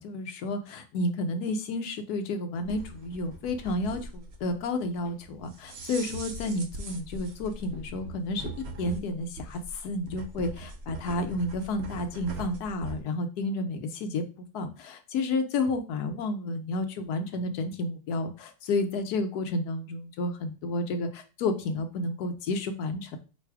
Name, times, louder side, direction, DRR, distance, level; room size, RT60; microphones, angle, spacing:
voice 1, 0.0-8.5 8.8-14.3 14.5-23.2, left 2 dB, 75° left, 7 dB, 1.2 m, -31 dB
sound 1, 2.6-13.0, right 3 dB, 50° right, 0.8 m, -41 dB
4.1 x 2.5 x 4.6 m, 0.32 s
omnidirectional pair, 1.7 m